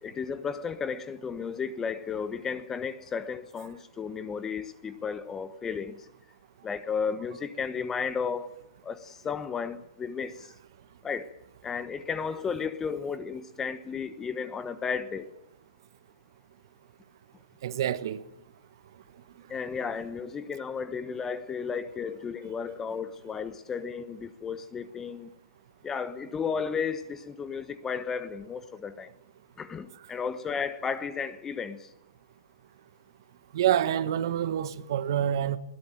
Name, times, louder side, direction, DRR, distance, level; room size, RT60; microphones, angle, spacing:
voice 1, 0.0-6.0 6.6-8.5 8.8-10.4 11.0-11.3 11.6-15.3 19.5-25.3 25.8-29.1 29.6-31.8, left 6 dB, 15° left, 1.1 m, -33 dB
voice 2, 17.6-18.2 33.5-35.6, right 10 dB, 60° right, 1.5 m, -27 dB
21.5 x 17.5 x 9.1 m
hypercardioid pair, 145°, 2 cm